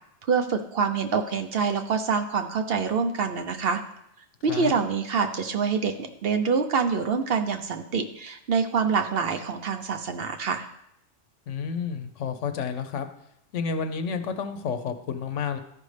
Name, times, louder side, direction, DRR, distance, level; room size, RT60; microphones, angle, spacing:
voice 1, 0.2-3.8 4.4-10.7, right 5 dB, 60° right, 6 dB, 0.8 m, -26 dB
voice 2, 11.5-13.1 13.5-15.6, left 6 dB, 75° left, 8 dB, 1.0 m, -30 dB
13.5 x 5.3 x 3.3 m, 0.78 s
omnidirectional pair, 1.3 m